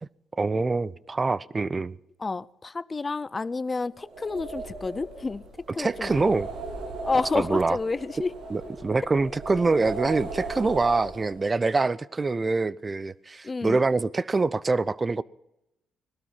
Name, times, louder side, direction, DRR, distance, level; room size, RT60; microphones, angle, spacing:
voice 1, 0.4-1.9 5.8-6.5 7.3-7.8 8.5-15.2, right 3 dB, 25° right, 0.6 m, -25 dB
voice 2, 2.2-5.4 5.7-6.3 7.0-8.3 13.4-13.8, left 3 dB, 25° left, 0.5 m, -30 dB
sound 1, 4.0-11.6, right 3 dB, 90° right, 3.9 m, -38 dB
19.0 x 12.5 x 5.7 m
cardioid pair, 90°, 0 cm